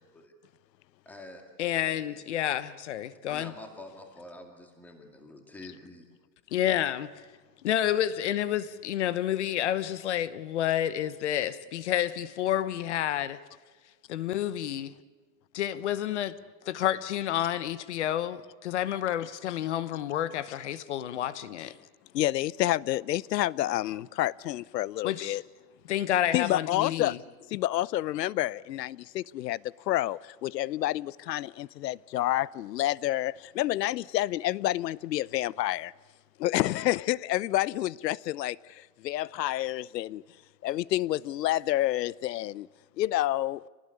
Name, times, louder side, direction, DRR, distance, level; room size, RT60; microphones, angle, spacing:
voice 1, 1.1-1.4 2.1-2.2 3.3-6.0, left 2 dB, 5° left, 2.0 m, -46 dB
voice 2, 1.6-3.5 6.5-7.1 7.6-13.4 14.1-14.9 15.5-16.3 16.6-21.7 25.0-25.4 25.9-27.2, left 11 dB, 45° left, 1.1 m, -29 dB
voice 3, 22.1-25.4 26.3-27.2 27.5-29.6 29.9-35.9 36.4-40.2 40.6-42.7 43.0-43.6, left 14 dB, 90° left, 0.8 m, -29 dB
27.0 x 19.0 x 9.8 m
supercardioid pair, 180°, 48 cm